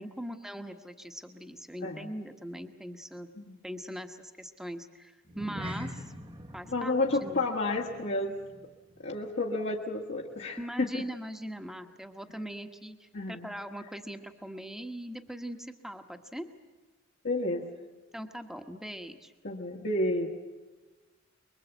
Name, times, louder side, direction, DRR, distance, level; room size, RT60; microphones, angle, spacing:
voice 1, 0.0-3.3 3.6-6.0 6.5-6.9 7.2-7.4 10.6-16.5 18.1-19.3, equal, ahead, 6 dB, 1.3 m, -41 dB
sound 1, 5.2-9.9 10.1-10.4 10.9-11.0, equal, 25° right, 1.2 m, -44 dB
voice 2, 6.7-8.3 9.0-11.0 13.1-13.5 17.2-17.6 19.4-20.3, left 2 dB, 60° left, -3 dB, 1.7 m, -31 dB
25.0 x 23.0 x 8.2 m, 1.3 s
head